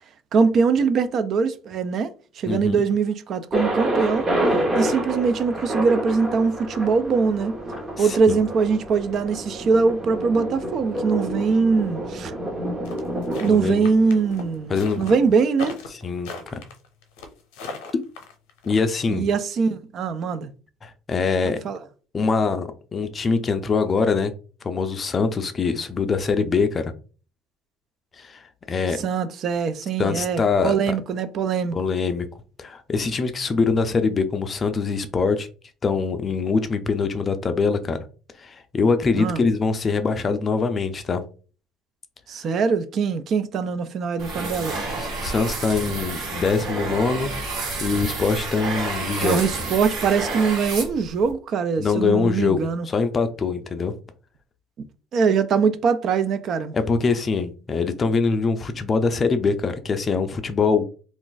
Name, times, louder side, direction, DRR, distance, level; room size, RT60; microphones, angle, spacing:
voice 1, 0.3-2.1 2.4-4.3 4.7-7.5 8.0-12.3 13.4-15.8 19.1-20.5 21.5-21.8 29.0-31.8 39.2-39.4 42.3-44.7 49.2-52.9 55.1-56.7, right 5 dB, 50° right, 0.4 m, -22 dB
voice 2, 2.5-2.8 8.0-8.4 13.5-13.9 14.7-15.2 16.0-16.6 17.9-18.1 18.7-19.3 20.8-21.6 22.1-24.3 24.6-26.9 28.2-28.4 28.7-29.0 30.0-30.8 31.7-32.3 32.6-35.5 35.8-38.0 38.4-41.2 45.0-47.3 47.8-49.4 51.8-53.9 56.7-60.9, left 4 dB, 30° left, 0.4 m, -23 dB
Thunder, 3.5-15.3, right 1 dB, 25° right, 1.0 m, -28 dB
sound 1, 12.9-18.8, left 4 dB, 90° left, 0.7 m, -38 dB
sound 2, 44.2-51.3, right 3 dB, 70° right, 1.3 m, -30 dB
2.5 x 2.4 x 3.8 m
cardioid pair, 120°, 0 cm